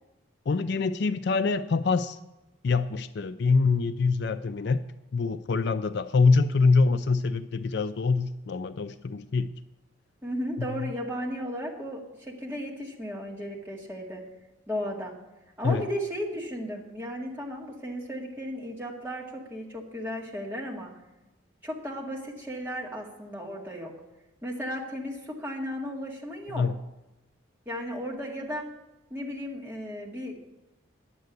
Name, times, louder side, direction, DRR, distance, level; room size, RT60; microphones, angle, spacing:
voice 1, 0.5-2.2 2.6-4.8 5.1-9.5 10.6-10.9 15.6-15.8 26.5-26.8, left 4 dB, 55° left, 11 dB, 0.4 m, -25 dB
voice 2, 10.2-14.2 14.7-15.1 15.6-20.9 21.6-23.9 24.4-26.7 27.7-28.7 29.1-30.4, equal, 10° right, -2 dB, 2.0 m, -35 dB
10.5 x 7.8 x 8.0 m, 1.0 s
head